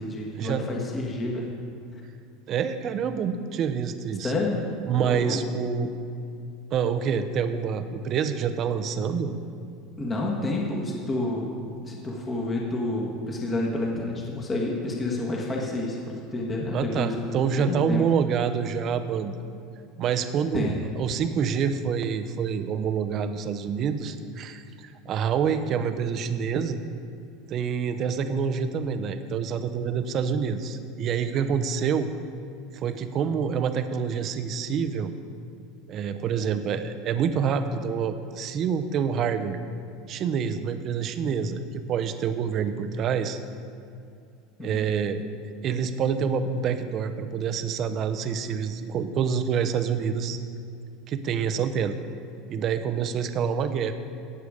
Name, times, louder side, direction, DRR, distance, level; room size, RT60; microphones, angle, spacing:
voice 1, 0.0-1.5 1.9-2.0 4.2-4.6 5.0-5.6 10.0-11.5 11.8-18.0 20.5-20.8 44.6-44.9, left 2 dB, 15° left, -2 dB, 1.4 m, -29 dB
voice 2, 2.5-4.3 4.8-5.9 6.7-9.3 16.7-19.4 20.0-26.8 27.5-32.1 32.8-35.1 35.9-39.6 40.1-43.4 44.6-45.2 45.6-50.4 51.1-52.0 52.5-53.9, right 7 dB, 35° right, 10 dB, 0.7 m, -27 dB
17.5 x 6.8 x 5.0 m, 2.5 s
supercardioid pair, 160°, 0 cm